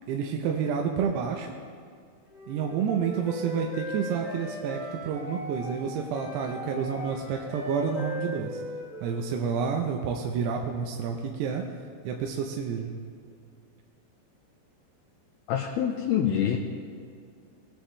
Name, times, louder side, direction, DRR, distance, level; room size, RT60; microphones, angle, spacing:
voice 1, 0.1-1.5 2.5-8.6 9.0-11.6 12.0-12.9, right 6 dB, 80° right, 2 dB, 2.7 m, -29 dB
Wind instrument woodwind instrument, 2.3-9.7, left 1 dB, 5° right, 1.5 m, -38 dB
voice 2, 15.5-16.6, left 9 dB, 85° left, 0 dB, 2.3 m, -25 dB
19.0 x 10.0 x 3.2 m, 2.3 s
omnidirectional pair, 5.1 m